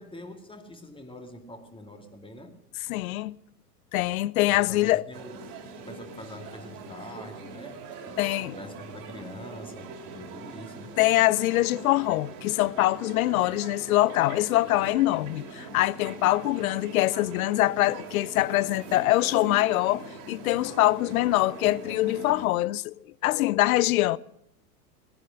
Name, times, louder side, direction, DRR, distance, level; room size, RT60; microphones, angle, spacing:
voice 1, 0.0-2.6 4.5-5.4 5.8-8.2 8.6-11.0, left 1 dB, 10° left, 2.2 m, -44 dB
voice 2, 2.9-3.3 3.9-5.0 8.2-8.6 11.0-22.9 23.2-24.2, left 16 dB, 60° left, 0.7 m, -24 dB
sound 1, 5.1-22.5, right 3 dB, 50° right, 3.0 m, -42 dB
18.5 x 10.5 x 6.3 m
figure-of-eight pair, 85°, 48 cm